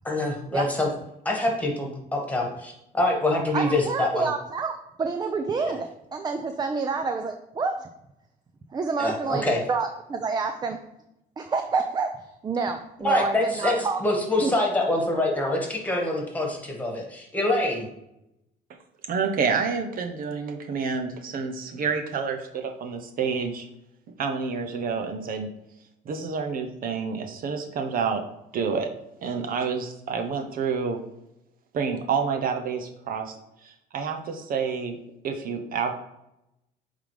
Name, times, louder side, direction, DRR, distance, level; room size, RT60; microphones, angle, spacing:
voice 1, 0.1-0.9 1.3-4.3 5.6-5.8 9.0-9.6 13.0-17.9, left 2 dB, 10° left, 0 dB, 1.8 m, -25 dB
voice 2, 3.5-7.9 8.7-10.8 11.4-14.0 14.4-14.5, right 4 dB, 25° right, 6 dB, 0.5 m, -28 dB
voice 3, 19.1-23.7 24.2-25.5 26.1-28.2 28.5-28.9 29.2-31.0 31.7-33.3 33.6-35.0 35.2-35.9, right 5 dB, 60° right, 5 dB, 0.9 m, -28 dB
8.4 x 3.8 x 3.4 m, 0.85 s
cardioid pair, 110°, 17 cm